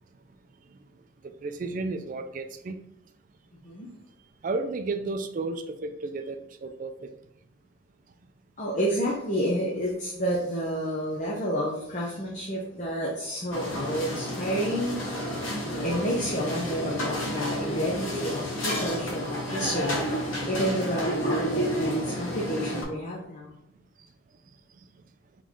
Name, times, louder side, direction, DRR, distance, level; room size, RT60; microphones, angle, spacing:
voice 1, 1.4-2.8 4.4-7.1, right 3 dB, 40° right, 8 dB, 0.3 m, -32 dB
voice 2, 8.6-23.5, equal, 40° left, -3 dB, 0.7 m, -30 dB
sound 1, 13.5-22.8, equal, 85° left, 1.2 m, -30 dB
3.8 x 3.2 x 3.6 m, 0.78 s
head